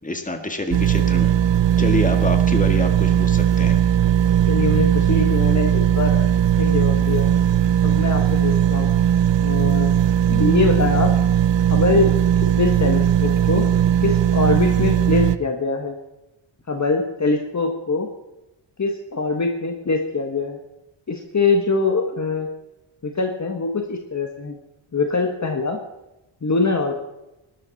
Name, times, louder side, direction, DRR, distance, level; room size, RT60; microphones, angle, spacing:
voice 1, 0.0-1.3 1.8-3.8, left 2 dB, 15° left, 4 dB, 2.0 m, -26 dB
sound 1, 0.7-15.4, right 9 dB, 60° right, 0.7 m, -18 dB
voice 2, 4.2-6.3 6.6-7.3 7.8-8.9 9.4-9.9 10.3-11.1 11.7-12.1 12.6-13.7 14.0-16.0 16.7-18.1 18.8-20.6 21.1-22.5 23.0-24.6 24.9-25.8 26.4-26.9, left 3 dB, 35° left, 3 dB, 1.4 m, -23 dB
19.0 x 12.5 x 4.1 m, 0.96 s
wide cardioid pair, 110°, 48 cm